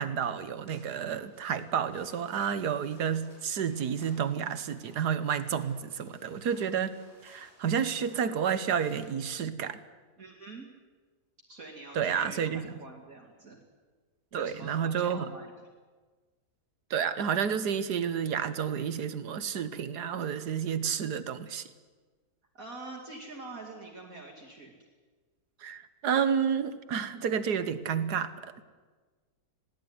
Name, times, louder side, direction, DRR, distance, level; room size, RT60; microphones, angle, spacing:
voice 1, 0.0-7.0 7.2-9.8 12.0-12.7 14.3-15.3 16.9-21.6 25.6-28.6, right 7 dB, 85° right, 13 dB, 1.7 m, -30 dB
sound 1, 0.6-9.3, left 1 dB, 40° left, 6.1 m, -60 dB
voice 2, 10.2-10.7 11.5-13.6 14.3-15.7 22.5-24.7, right 2 dB, 55° right, -2 dB, 2.9 m, -45 dB
21.0 x 17.0 x 9.7 m, 1.4 s
omnidirectional pair, 1.7 m